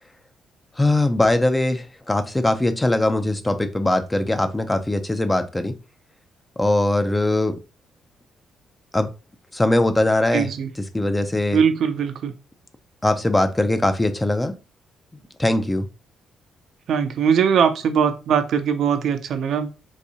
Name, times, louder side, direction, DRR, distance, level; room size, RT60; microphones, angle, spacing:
voice 1, 0.8-5.8 6.6-7.6 8.9-9.1 9.5-10.5 10.8-11.6 13.0-14.6 15.4-15.9, left 1 dB, 15° left, 0.5 m, -21 dB
voice 2, 10.3-10.7 11.5-12.3 16.9-19.7, right 7 dB, 70° right, 0.5 m, -20 dB
4.0 x 2.6 x 2.8 m
cardioid pair, 90°, 0 cm